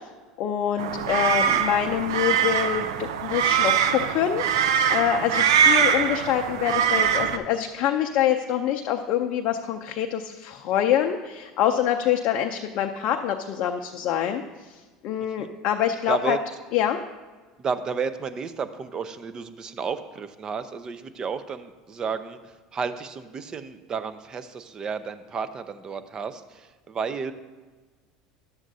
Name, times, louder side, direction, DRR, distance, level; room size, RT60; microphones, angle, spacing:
voice 1, 0.4-16.4 16.7-17.0, left 10 dB, 60° left, 3 dB, 0.5 m, -25 dB
sound 1, 0.8-7.4, right 8 dB, 80° right, 0.4 m, -23 dB
voice 2, 16.1-16.4 17.6-27.3, right 5 dB, 35° right, 11 dB, 0.5 m, -32 dB
11.0 x 7.3 x 2.7 m, 1.4 s
hypercardioid pair, 85°, 2 cm